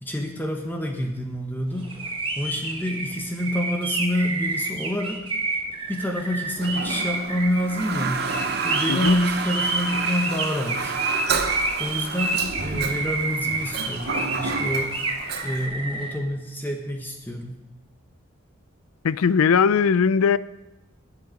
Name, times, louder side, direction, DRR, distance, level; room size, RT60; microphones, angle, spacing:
voice 1, 0.0-1.9 2.4-5.3 5.9-8.3 8.6-10.9 11.8-15.0 15.4-17.6, equal, 10° left, 2 dB, 1.1 m, -27 dB
sound 1, 1.8-16.1, right 3 dB, 25° right, 1.4 m, -29 dB
Toilet flush, 6.5-15.7, right 4 dB, 50° right, 0.9 m, -30 dB
voice 2, 8.9-9.2 19.0-20.4, left 6 dB, 85° left, 17 dB, 0.4 m, -19 dB
20.0 x 8.0 x 3.8 m, 0.99 s
head